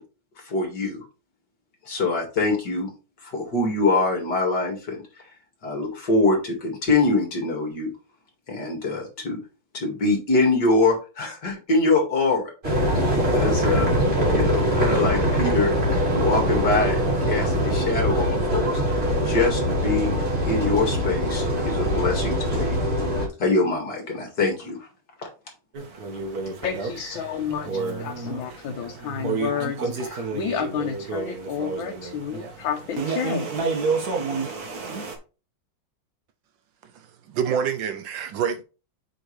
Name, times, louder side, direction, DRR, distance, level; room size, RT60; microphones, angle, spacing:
voice 1, 0.4-1.0 1.9-2.9 3.2-5.2 5.6-7.9 8.5-9.4 9.7-13.9 14.3-15.7 16.1-20.1 20.4-22.7 23.4-24.9 25.2-25.3, left 3 dB, 60° left, 2.5 m, -24 dB
sound 1, 12.6-23.3, equal, 30° right, 3.0 m, -23 dB
sound 2, 25.7-35.2, right 4 dB, 50° right, 1.8 m, -30 dB
voice 2, 26.4-33.8, left 8 dB, 80° left, 1.6 m, -31 dB
voice 3, 36.8-38.6, right 7 dB, 80° right, 1.3 m, -27 dB
7.9 x 5.1 x 3.2 m
omnidirectional pair, 2.1 m